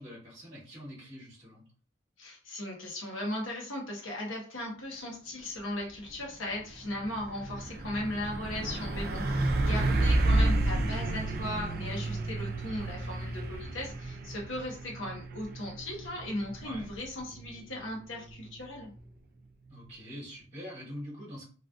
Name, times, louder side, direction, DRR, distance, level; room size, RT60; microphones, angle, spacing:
voice 1, 0.0-1.6 9.6-10.0 16.6-16.9 19.7-21.5, equal, 35° right, -8 dB, 1.2 m, -44 dB
voice 2, 2.2-18.9, left 1 dB, 80° left, -1 dB, 1.1 m, -37 dB
Truck, 5.9-6.2 6.5-19.1, right 2 dB, 50° right, 0.5 m, -31 dB
3.1 x 2.5 x 2.4 m, 0.40 s
head